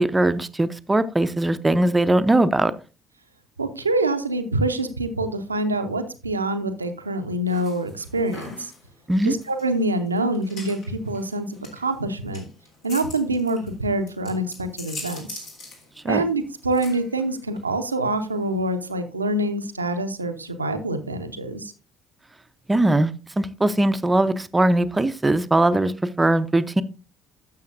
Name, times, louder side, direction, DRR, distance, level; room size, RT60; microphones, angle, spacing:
voice 1, 0.0-2.7 9.1-9.3 16.0-16.2 22.7-23.1 23.4-25.9 26.2-26.8, right 1 dB, 15° right, 13 dB, 0.7 m, -20 dB
voice 2, 3.6-8.7 9.2-12.4 12.8-15.5 16.0-21.7, right 1 dB, 85° right, 7 dB, 0.7 m, -26 dB
sound 1, 7.5-18.8, left 2 dB, 60° left, 3.3 m, -43 dB
12.0 x 7.2 x 2.6 m, 0.34 s
figure-of-eight pair, 50°, 0 cm